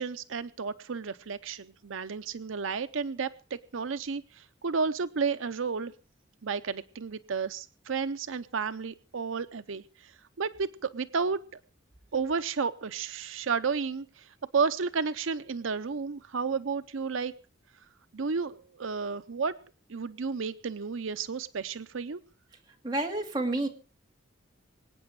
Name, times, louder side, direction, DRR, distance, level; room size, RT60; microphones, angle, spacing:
voice 1, 0.0-5.9 6.4-11.4 12.1-17.3 18.1-19.6 19.9-22.2, right 5 dB, 80° right, 11 dB, 0.6 m, -32 dB
voice 2, 22.7-23.7, right 2 dB, 20° right, 1 dB, 2.3 m, -30 dB
25.0 x 8.9 x 4.7 m, 0.36 s
head